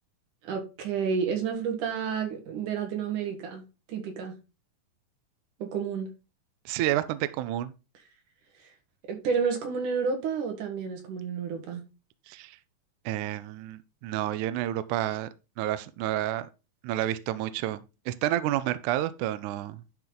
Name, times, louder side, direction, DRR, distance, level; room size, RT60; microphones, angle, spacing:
voice 1, 0.4-3.6 3.9-4.4 5.6-6.1 9.1-11.8, right 6 dB, 65° right, 3.1 m, -30 dB
voice 2, 6.6-7.7 12.3-12.6 13.0-15.3 15.6-16.5 16.8-19.8, right 13 dB, 80° right, 1.8 m, -30 dB
11.0 x 4.6 x 3.9 m
omnidirectional pair, 4.0 m